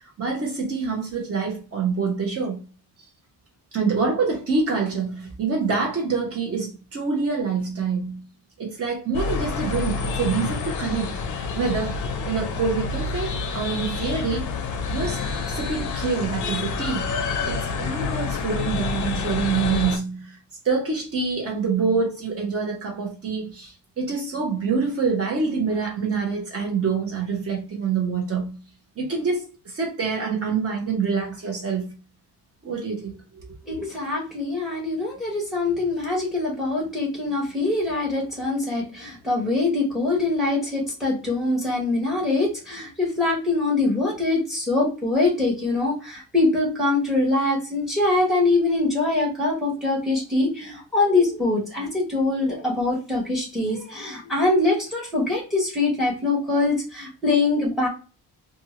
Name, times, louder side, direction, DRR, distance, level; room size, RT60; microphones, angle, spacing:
voice 1, 0.2-2.7 3.7-8.3 8.6-14.4 14.9-17.1 17.5-20.4 20.6-28.6 29.0-31.9 32.6-33.5, right 5 dB, 35° right, 0.9 m, -26 dB
sound 1, 9.1-20.0, left 5 dB, 50° left, 0.5 m, -28 dB
voice 2, 33.7-57.9, left 2 dB, ahead, 0.9 m, -23 dB
2.6 x 2.4 x 2.9 m
cardioid pair, 175°, 41 cm